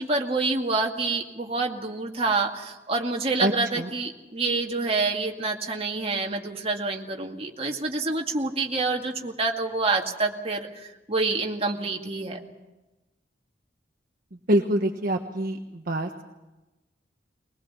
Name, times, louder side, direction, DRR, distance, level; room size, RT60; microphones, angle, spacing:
voice 1, 0.0-12.4, right 3 dB, 35° right, 1 dB, 2.2 m, -27 dB
voice 2, 3.4-3.9 14.5-16.2, right 1 dB, 50° right, 2 dB, 1.4 m, -25 dB
21.5 x 21.0 x 7.2 m, 1.1 s
head